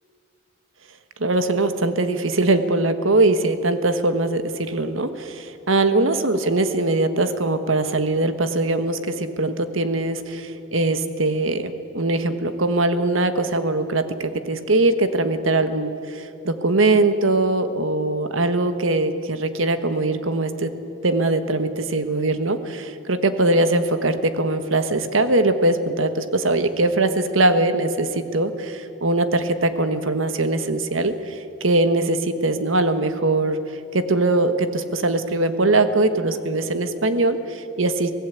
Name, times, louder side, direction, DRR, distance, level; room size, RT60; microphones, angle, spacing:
voice 1, 1.2-20.7 21.0-33.6 33.9-38.1, right 2 dB, 80° right, 9 dB, 1.4 m, -21 dB
24.5 x 18.0 x 8.2 m, 2.7 s
head